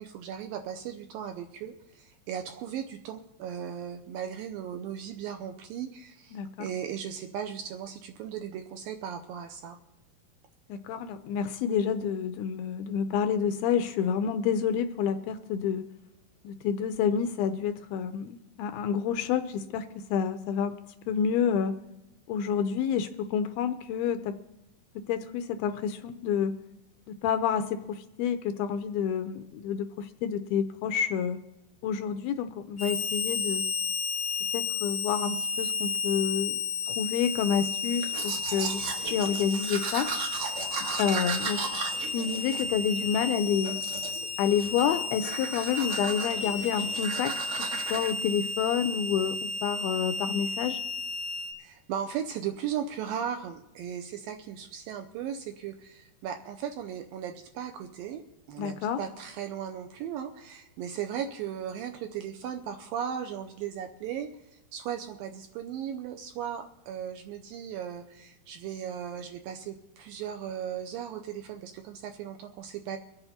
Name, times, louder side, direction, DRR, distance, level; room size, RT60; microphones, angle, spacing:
voice 1, 0.0-9.8 51.6-58.2 58.5-64.3 64.7-73.0, right 9 dB, 80° right, 6 dB, 2.1 m, -37 dB
voice 2, 6.3-6.7 10.7-15.8 16.4-20.8 21.1-21.8 22.3-24.4 25.1-26.5 27.1-31.4 31.8-33.7 34.5-36.6 36.9-38.8 39.1-40.1 41.0-41.6 42.1-43.8 44.4-50.8 58.6-59.0, left 8 dB, 80° left, 9 dB, 2.2 m, -29 dB
Harmonica, 32.8-51.5, left 4 dB, 60° left, 1.2 m, -33 dB
Domestic sounds home sounds, 38.0-43.2 43.6-44.3 44.6-44.9 45.2-48.1, right 5 dB, 65° right, 1.8 m, -36 dB
24.0 x 8.0 x 4.2 m, 0.95 s
omnidirectional pair, 4.7 m